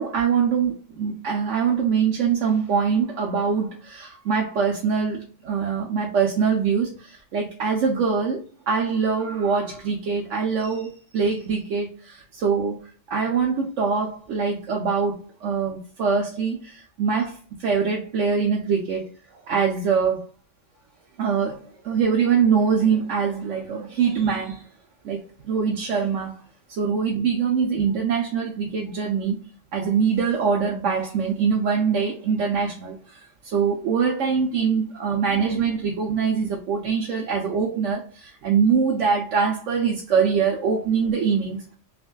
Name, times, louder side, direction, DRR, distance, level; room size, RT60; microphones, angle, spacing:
voice 1, 0.0-8.4 8.7-12.8 13.1-19.0 19.5-20.2 21.2-24.7 25.0-25.2 25.4-26.4 26.7-41.8, right 6 dB, 85° right, 1.2 m, -23 dB
5.8 x 2.7 x 2.3 m
omnidirectional pair, 1.2 m